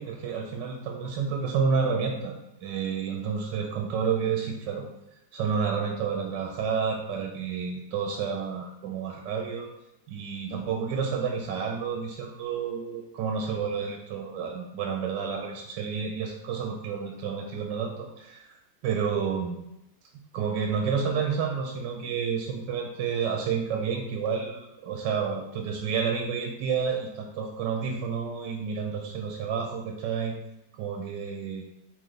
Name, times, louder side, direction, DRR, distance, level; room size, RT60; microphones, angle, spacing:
voice 1, 0.0-2.3 2.6-4.8 5.3-9.7 10.1-18.5 18.8-19.6 20.3-30.3 30.8-31.6, right 6 dB, 80° right, 1 dB, 1.2 m, -30 dB
4.3 x 3.2 x 3.9 m, 0.89 s
omnidirectional pair, 2.0 m